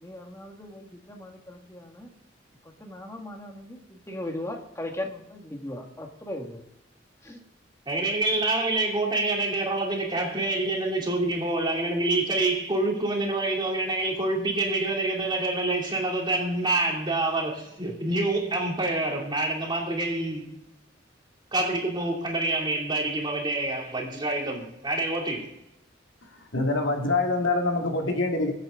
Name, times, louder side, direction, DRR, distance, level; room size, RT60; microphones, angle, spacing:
voice 1, 0.0-2.1 2.8-6.6 7.3-7.4, left 1 dB, 15° left, 1.9 m, -38 dB
voice 2, 7.9-20.5 21.5-25.5, right 2 dB, 25° right, 2.9 m, -27 dB
voice 3, 26.5-28.5, left 2 dB, 85° left, 2.2 m, -25 dB
23.0 x 8.6 x 3.8 m
head